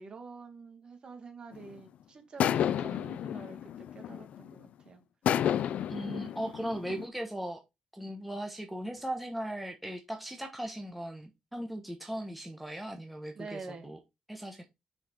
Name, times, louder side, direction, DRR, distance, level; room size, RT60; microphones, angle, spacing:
voice 1, 0.0-5.0 13.3-14.0, right 4 dB, 40° right, 1.8 m, -47 dB
sound 1, 1.5-1.8 2.4-4.5 5.3-7.1, left 10 dB, 70° left, 0.4 m, -31 dB
voice 2, 5.9-7.6 7.9-14.0 14.3-14.6, right 1 dB, ahead, 1.2 m, -38 dB
6.0 x 4.8 x 4.4 m
cardioid pair, 130°, 2 cm